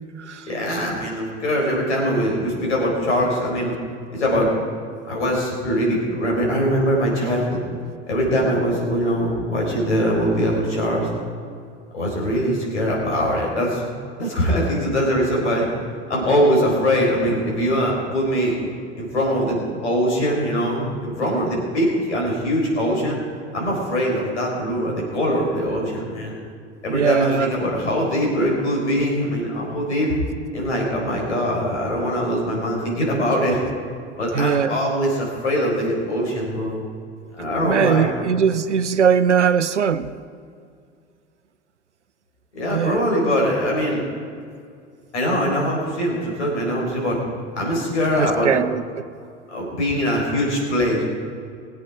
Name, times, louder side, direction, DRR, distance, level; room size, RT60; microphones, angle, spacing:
voice 1, 0.5-3.7 4.1-4.5 5.1-7.6 8.1-11.1 11.9-13.9 14.2-15.7 16.1-18.6 19.0-23.2 23.5-26.3 26.8-30.1 30.5-33.6 34.2-36.8 37.4-38.3 42.5-44.0 45.1-47.2 47.5-48.5 49.5-51.0, equal, 75° left, -2 dB, 4.4 m, -22 dB
voice 2, 26.9-27.5 34.3-34.8 37.6-40.1 42.7-43.0 48.2-48.8, right 7 dB, 85° right, 14 dB, 0.6 m, -20 dB
21.0 x 8.4 x 4.9 m, 2.2 s
figure-of-eight pair, 70°, 35 cm